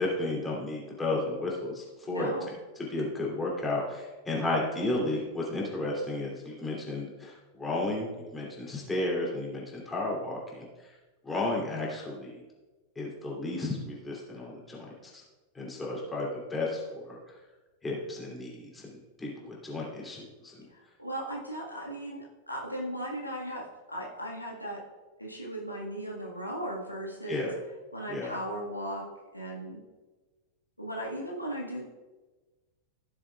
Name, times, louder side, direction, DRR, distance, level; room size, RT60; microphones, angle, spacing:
voice 1, 0.0-2.3 2.8-10.7 11.2-12.4 12.9-15.2 15.5-17.2 17.8-20.5 27.3-27.5 28.1-28.4, left 2 dB, 10° left, -4 dB, 3.0 m, -33 dB
voice 2, 2.1-2.5 21.0-24.8 25.2-27.5 27.9-29.0 29.3-29.8 30.8-31.8, right 1 dB, 90° left, -4 dB, 1.8 m, -37 dB
16.0 x 7.1 x 2.4 m, 1.2 s
figure-of-eight pair, 90°, 0 cm